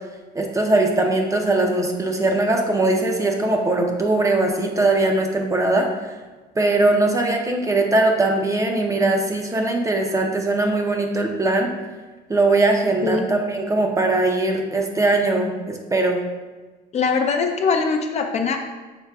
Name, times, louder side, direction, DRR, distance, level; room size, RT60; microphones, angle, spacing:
voice 1, 0.3-6.1 6.6-11.7 12.3-16.2, right 2 dB, 20° right, 2 dB, 0.5 m, -20 dB
voice 2, 16.9-18.6, left 5 dB, 40° left, 4 dB, 0.5 m, -21 dB
5.8 x 3.9 x 2.3 m, 1.2 s
cardioid pair, 110°, 17 cm